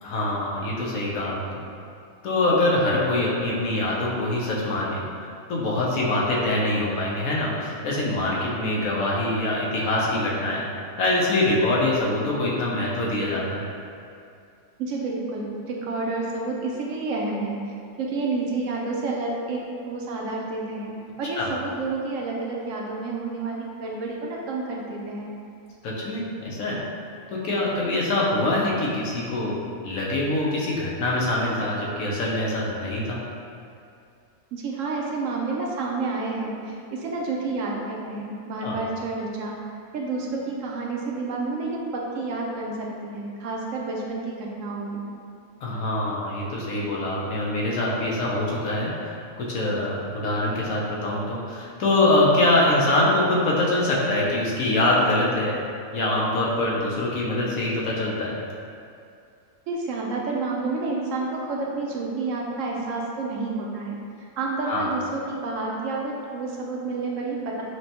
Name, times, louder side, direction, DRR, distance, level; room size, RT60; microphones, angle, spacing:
voice 1, 0.0-1.6 2.2-10.6 11.0-13.7 21.4-21.5 25.8-26.8 27.3-29.5 29.8-33.2 38.6-38.8 45.6-55.6 55.9-58.4 64.6-64.9, left 1 dB, 85° left, -4 dB, 1.2 m, -24 dB
voice 2, 14.8-17.6 18.0-25.3 34.5-39.5 39.9-45.0 59.7-64.0 64.4-67.6, right 3 dB, 75° right, -2 dB, 0.9 m, -29 dB
6.1 x 2.2 x 2.8 m, 2.4 s
omnidirectional pair, 1.4 m